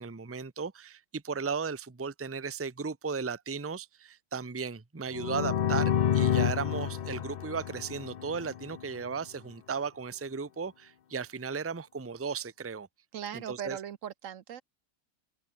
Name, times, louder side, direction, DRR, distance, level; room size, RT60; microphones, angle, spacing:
voice 1, 0.0-12.9 13.3-13.8, right 5 dB, 15° right, 0.7 m, -36 dB
sound 1, 5.1-8.8, left 9 dB, 85° left, 0.4 m, -29 dB
voice 2, 13.1-14.6, right 9 dB, 65° right, 1.1 m, -39 dB
omnidirectional pair, 1.5 m